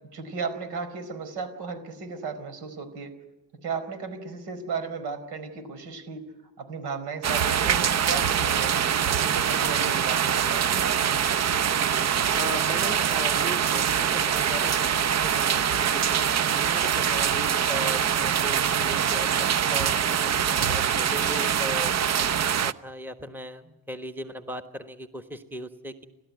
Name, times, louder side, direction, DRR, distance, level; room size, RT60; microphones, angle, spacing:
voice 1, 0.1-3.1 3.6-6.2 6.6-11.2, right 5 dB, 80° right, 10 dB, 4.5 m, -35 dB
sound 1, 7.2-22.7, right 8 dB, 40° right, 0.8 m, -24 dB
voice 2, 12.3-26.0, equal, 5° right, 7 dB, 1.4 m, -38 dB
29.5 x 13.0 x 9.5 m, 1.1 s
cardioid pair, 100°, 40 cm